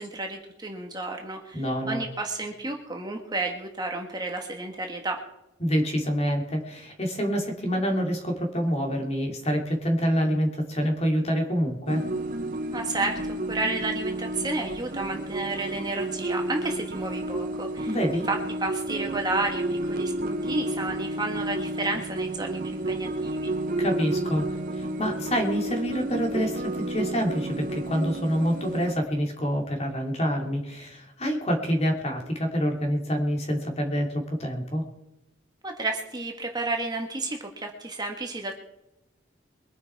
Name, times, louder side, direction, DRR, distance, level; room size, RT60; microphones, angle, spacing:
voice 1, 0.0-5.2 12.7-23.5 35.6-38.6, right 2 dB, 20° right, 2 dB, 1.6 m, -31 dB
voice 2, 1.5-2.0 5.6-12.1 17.8-18.2 23.8-24.5 24.7-34.9, equal, 35° left, 2 dB, 3.1 m, -27 dB
sound 1, 11.9-28.9, right 1 dB, 45° right, 1.0 m, -31 dB
23.0 x 10.5 x 4.7 m, 0.92 s
head